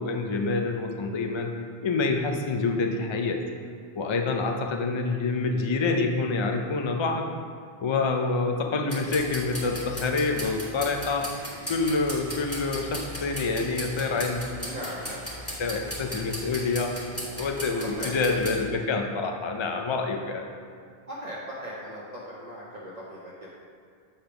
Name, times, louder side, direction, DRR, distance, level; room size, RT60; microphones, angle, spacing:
voice 1, 0.0-1.5 1.8-3.4 4.0-7.3 7.8-11.4 11.7-14.5 15.6-17.1 17.4-20.4, left 3 dB, 45° left, 3 dB, 0.3 m, -27 dB
sound 1, 8.9-18.6, equal, 15° left, 1.3 m, -37 dB
voice 2, 14.5-15.2 17.8-18.1 21.1-23.5, equal, 40° right, -6 dB, 0.9 m, -38 dB
7.8 x 3.4 x 5.8 m, 2.2 s
omnidirectional pair, 1.1 m